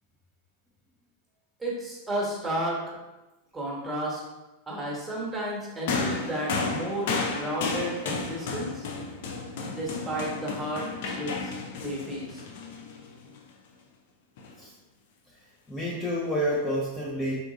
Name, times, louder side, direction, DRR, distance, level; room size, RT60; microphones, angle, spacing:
voice 1, 1.6-2.9 3.5-4.2 4.7-8.9 9.7-12.4, right 1 dB, 10° right, -4 dB, 1.2 m, -33 dB
sound 1, 5.9-13.4 14.4-14.5, left 4 dB, 55° left, 0.5 m, -32 dB
voice 2, 15.7-17.4, equal, 10° left, -6 dB, 0.6 m, -29 dB
3.9 x 3.4 x 2.6 m, 1.1 s
figure-of-eight pair, 90°, 0 cm